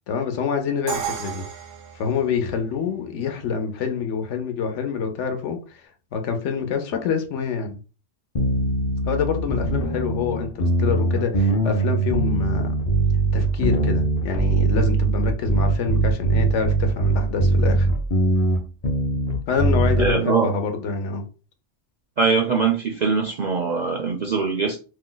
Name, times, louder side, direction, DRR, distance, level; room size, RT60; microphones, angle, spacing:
voice 1, 0.1-1.4 1.9-5.8 6.1-7.8 9.0-12.7 13.3-17.9 19.5-21.2, left 5 dB, 75° left, 1.0 m, -26 dB
Crash cymbal, 0.9-2.8, right 8 dB, 80° right, 1.0 m, -32 dB
sound 1, 8.3-20.1, right 2 dB, 50° left, 0.5 m, -21 dB
voice 2, 20.0-20.5 22.2-24.8, right 5 dB, 60° right, 0.5 m, -22 dB
2.7 x 2.1 x 3.8 m
omnidirectional pair, 1.2 m